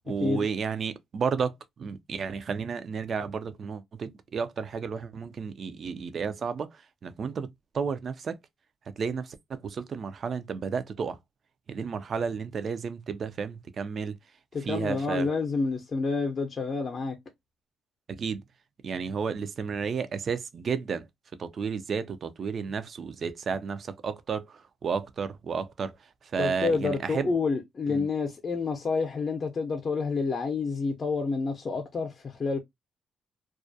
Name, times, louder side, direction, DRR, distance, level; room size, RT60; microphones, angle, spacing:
voice 1, 0.1-8.4 9.0-11.2 11.7-14.2 14.6-15.3 18.1-18.4 18.8-21.1 21.4-26.0 26.2-27.3 27.9-28.1, right 6 dB, 50° right, 0.4 m, -32 dB
voice 2, 14.5-17.2 26.4-32.6, left 4 dB, 40° left, 0.5 m, -29 dB
2.3 x 2.1 x 2.6 m
cardioid pair, 90°, 0 cm